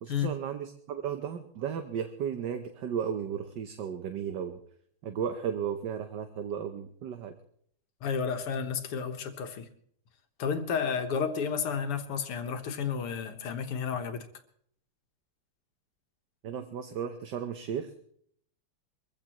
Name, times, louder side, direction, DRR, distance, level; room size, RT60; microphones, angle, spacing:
voice 1, 0.0-4.6 5.0-7.3 16.4-17.9, right 8 dB, 60° right, 1.4 m, -34 dB
voice 2, 8.0-9.7 10.4-14.3, left 6 dB, 85° left, 2.3 m, -31 dB
23.0 x 15.5 x 3.0 m
omnidirectional pair, 2.4 m